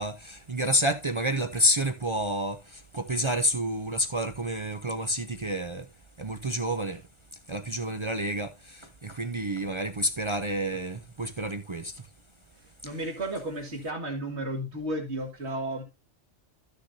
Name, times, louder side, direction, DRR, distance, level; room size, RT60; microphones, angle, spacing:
voice 1, 0.0-2.6 2.9-5.8 6.2-7.0 7.5-8.5 9.0-11.9, equal, 40° right, 0.4 m, -29 dB
voice 2, 12.6-15.8, right 1 dB, 65° right, 2.4 m, -33 dB
13.0 x 6.7 x 2.7 m
omnidirectional pair, 1.2 m